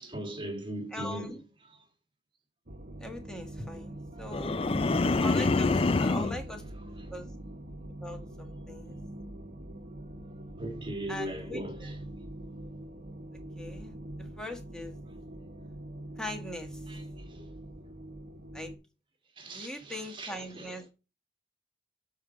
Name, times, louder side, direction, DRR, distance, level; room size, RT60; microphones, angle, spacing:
voice 1, 0.0-1.3 1.6-1.9 4.1-5.2 5.9-6.2 6.8-7.1 10.6-12.0 16.9-17.5 19.4-20.9, right 1 dB, 30° right, 1.8 m, -40 dB
voice 2, 0.9-1.4 3.0-4.6 5.2-6.6 7.1-7.3 8.0-9.0 11.1-11.9 13.6-15.0 16.2-16.8 18.5-18.7 19.5-20.9, left 1 dB, 5° left, 1.5 m, -41 dB
sound 1, 2.7-18.8, right 1 dB, 55° right, 1.1 m, -44 dB
sound 2, 4.3-6.4, left 3 dB, 30° left, 0.4 m, -26 dB
7.1 x 4.7 x 6.1 m
head